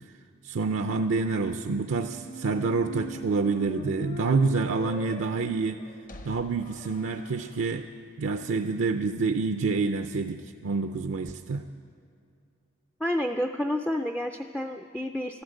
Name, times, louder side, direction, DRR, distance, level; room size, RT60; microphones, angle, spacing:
voice 1, 0.4-5.8 6.2-7.9 8.2-11.6, right 4 dB, 70° right, 8 dB, 0.5 m, -27 dB
sound 1, 1.8-7.7, left 1 dB, 40° left, 0.7 m, -41 dB
voice 2, 13.0-15.4, left 1 dB, 5° left, 5 dB, 0.3 m, -29 dB
13.5 x 11.5 x 7.7 m, 2.3 s
head